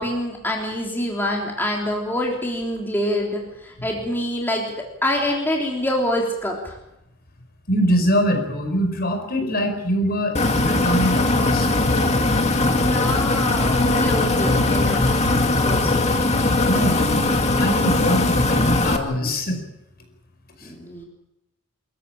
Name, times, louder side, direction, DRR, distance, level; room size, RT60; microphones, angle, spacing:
voice 1, 0.0-4.6 5.0-6.8 9.4-9.5 12.6-15.2 15.6-15.9 20.6-21.0, left 1 dB, 10° left, -1 dB, 3.5 m, -26 dB
voice 2, 7.7-11.8 12.6-12.9 16.6-17.2 17.6-19.6 20.6-20.7, equal, 50° left, 5 dB, 5.2 m, -23 dB
sound 1, 10.3-19.0, left 2 dB, 30° left, 2.3 m, -20 dB
26.0 x 14.5 x 8.9 m, 0.88 s
head